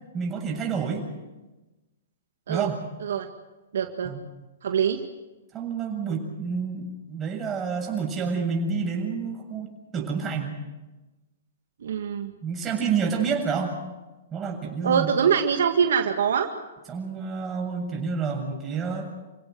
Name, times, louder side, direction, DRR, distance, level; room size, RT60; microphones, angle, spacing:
voice 1, 0.1-1.0 2.5-2.7 4.0-4.2 5.5-10.6 12.4-13.8 14.3-15.1 16.9-19.1, right 5 dB, 20° right, 1 dB, 7.6 m, -29 dB
voice 2, 3.7-4.1 4.6-5.0 11.8-12.3 14.8-16.5, right 7 dB, 70° right, 5 dB, 1.9 m, -23 dB
29.0 x 17.0 x 8.0 m, 1.1 s
hypercardioid pair, 125°, 0 cm